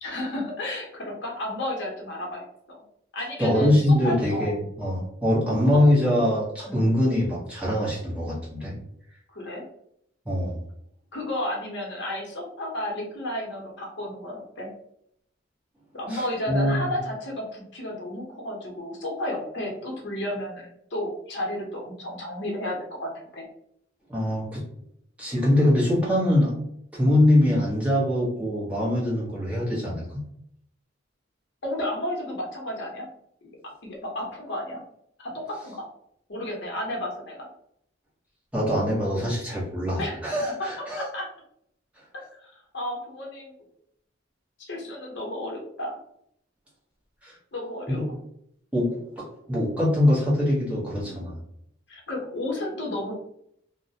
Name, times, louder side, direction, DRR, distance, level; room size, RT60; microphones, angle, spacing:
voice 1, 0.0-2.8 3.1-4.5 5.7-5.8 6.7-6.9 9.3-9.6 11.1-14.7 15.9-23.5 31.6-33.1 33.4-33.5 33.8-34.8 35.2-35.8 36.3-37.3 40.0-40.2 40.6-40.7 41.0-41.2 42.3-43.6 44.6-46.0 47.5-48.0 51.0-51.2 51.9-53.1, left 1 dB, 70° left, -1 dB, 0.7 m, -32 dB
voice 2, 3.4-8.7 10.2-10.5 16.1-16.9 24.1-24.6 25.2-26.5 26.9-30.2 38.5-41.1 47.2-47.3 47.9-48.1 48.7-51.4, left 1 dB, 5° right, -6 dB, 0.8 m, -23 dB
2.3 x 2.1 x 2.6 m, 0.72 s
head